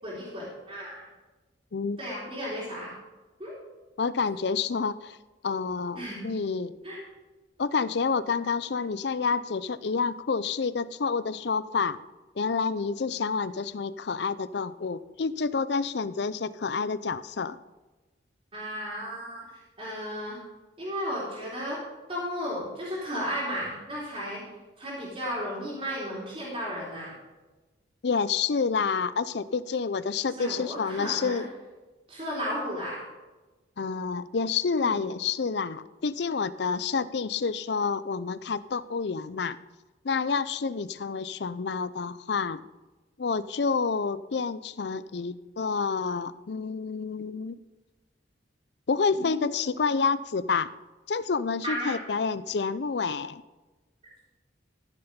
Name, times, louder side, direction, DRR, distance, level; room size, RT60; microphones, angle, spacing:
voice 1, 0.0-1.0 2.0-2.9 3.4-3.5 6.0-6.3 6.8-7.0 18.5-19.4 19.8-20.4 20.8-21.8 22.1-24.4 24.8-27.1 30.4-31.4 32.1-33.0 34.7-34.9 49.2-49.5 51.6-51.9, equal, 30° right, -7 dB, 3.7 m, -34 dB
voice 2, 4.0-5.2 5.4-6.8 7.6-12.0 12.4-17.6 28.0-31.5 33.8-39.6 40.0-42.6 43.2-47.6 48.9-50.7 51.1-53.4, left 5 dB, 65° left, 15 dB, 0.5 m, -28 dB
14.5 x 7.0 x 5.2 m, 1.2 s
head